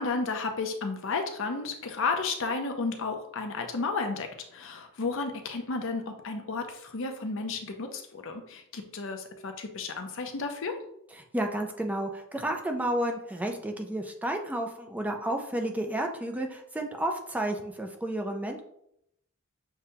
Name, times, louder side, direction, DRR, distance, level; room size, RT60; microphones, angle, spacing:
voice 1, 0.0-10.8, left 4 dB, 65° left, 5 dB, 0.6 m, -32 dB
voice 2, 11.3-18.6, right 1 dB, 5° right, 3 dB, 0.4 m, -31 dB
6.6 x 2.2 x 2.8 m, 0.75 s
head